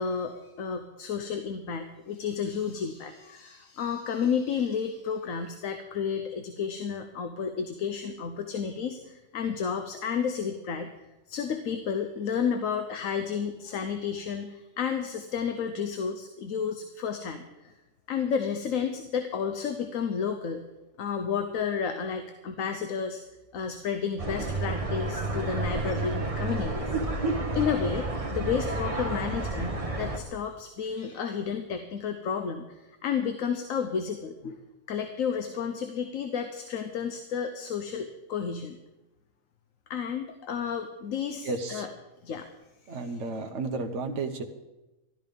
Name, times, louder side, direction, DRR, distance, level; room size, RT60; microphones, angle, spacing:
voice 1, 0.0-10.9 11.3-17.7 18.1-20.6 21.0-23.2 23.5-26.9 27.2-38.8 39.9-41.9 42.2-42.5 43.0-43.1, left 6 dB, 75° left, 7 dB, 1.2 m, -31 dB
sound 1, 24.2-30.2, right 2 dB, 25° right, 1.2 m, -30 dB
voice 2, 41.4-41.9 42.9-44.4, right 3 dB, 60° right, 4 dB, 1.3 m, -32 dB
13.5 x 12.5 x 5.3 m, 1.0 s
omnidirectional pair, 1.4 m